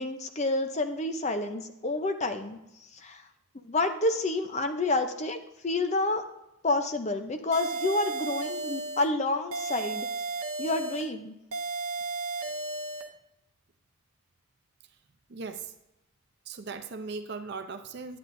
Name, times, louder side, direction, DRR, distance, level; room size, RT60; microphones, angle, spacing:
voice 1, 0.0-2.6 2.9-3.2 3.6-5.4 5.6-6.2 6.6-10.1 10.6-11.3, left 2 dB, 30° left, 7 dB, 0.6 m, -29 dB
sound 1, 7.5-9.1 9.5-11.1 11.5-13.1, right 3 dB, 85° right, 0.8 m, -34 dB
voice 2, 15.3-15.7 16.5-18.2, right 4 dB, 50° right, 8 dB, 0.6 m, -38 dB
9.5 x 9.4 x 2.6 m, 0.88 s
head